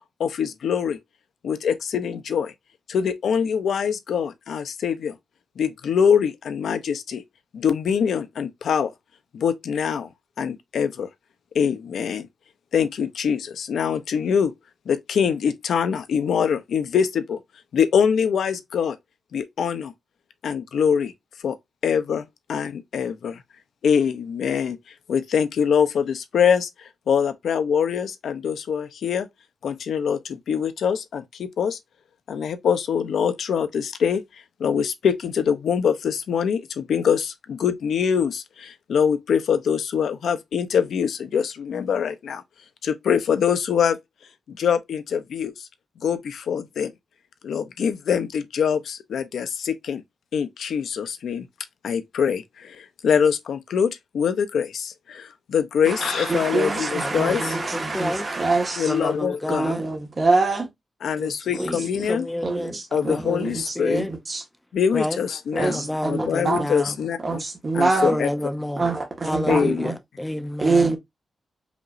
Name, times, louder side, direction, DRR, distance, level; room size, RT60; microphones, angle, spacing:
voice 1, 0.2-1.0 1.4-2.5 2.9-5.1 5.6-7.2 7.5-8.9 9.3-10.1 10.4-11.1 11.5-12.3 12.7-14.5 14.9-17.4 17.7-19.0 19.3-19.9 20.4-21.1 21.4-21.5 21.8-23.4 23.8-24.8 25.1-29.3 29.6-31.8 32.3-34.2 34.6-42.4 42.8-44.0 44.5-45.7 46.0-46.9 47.4-50.0 50.3-51.5 51.8-57.6 58.8-59.7 61.0-62.3 62.9-64.1 64.7-67.4 67.7-68.3 69.5-69.9, left 7 dB, 80° left, 0.6 m, -24 dB
voice 2, 56.0-58.9 59.5-60.7 61.5-61.7 62.4-63.6 63.9-64.4 65.5-66.6 67.2-68.1 68.8-69.9 70.6-71.0, right 3 dB, 30° right, 1.4 m, -24 dB
voice 3, 57.0-58.3 58.8-59.8 61.2-64.1 64.9-65.2 65.6-66.9 68.0-71.0, left 1 dB, 10° left, 0.7 m, -29 dB
5.1 x 3.0 x 2.5 m
wide cardioid pair, 145°, 0 cm